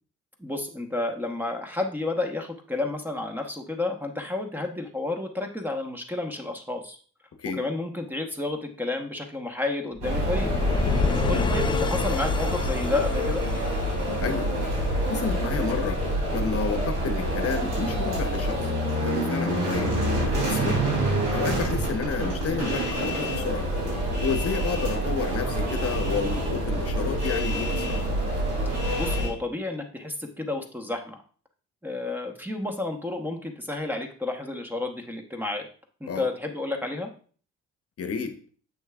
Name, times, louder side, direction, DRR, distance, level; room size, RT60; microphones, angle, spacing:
voice 1, 0.4-7.0 7.5-10.5 11.3-13.4 28.7-31.2 31.8-35.7 36.0-37.1, left 2 dB, 5° right, 4 dB, 1.1 m, -31 dB
sound 1, 10.0-15.0, left 5 dB, 15° left, 0.3 m, -29 dB
sound 2, 10.0-29.3, right 1 dB, 85° right, 3.3 m, -27 dB
voice 2, 11.2-11.6 14.2-14.5 14.8-21.0 21.3-23.7 24.0-28.0 36.1-36.3 38.0-38.4, left 5 dB, 50° left, 7 dB, 0.9 m, -31 dB
7.8 x 6.2 x 2.4 m, 0.42 s
cardioid pair, 90°, 30 cm